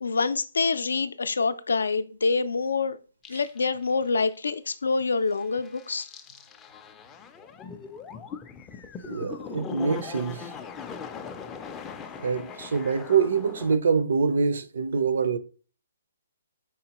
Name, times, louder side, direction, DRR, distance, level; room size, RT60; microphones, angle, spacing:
voice 1, 0.0-3.0 3.3-6.1, left 4 dB, 90° left, 0.4 m, -26 dB
sound 1, 3.2-3.9 4.3-4.4 5.3-13.8, left 6 dB, 15° left, 0.3 m, -40 dB
voice 2, 9.0-10.5 12.2-15.4, right 5 dB, 65° right, 0.5 m, -25 dB
4.8 x 3.6 x 2.9 m
hypercardioid pair, 160°, 0 cm